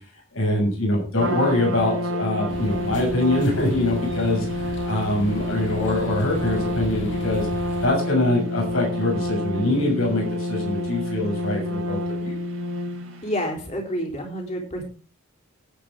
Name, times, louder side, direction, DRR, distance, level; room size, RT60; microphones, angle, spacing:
voice 1, 0.3-7.5 7.8-12.4, left 1 dB, 80° left, -1 dB, 6.9 m, -24 dB
Trumpet, 1.2-13.3, left 1 dB, 85° right, 4.0 m, -28 dB
sound 1, 2.5-7.9, equal, 60° left, 3.7 m, -36 dB
voice 2, 13.2-14.8, equal, 30° left, 1 dB, 3.9 m, -28 dB
18.0 x 9.2 x 3.8 m, 0.36 s
head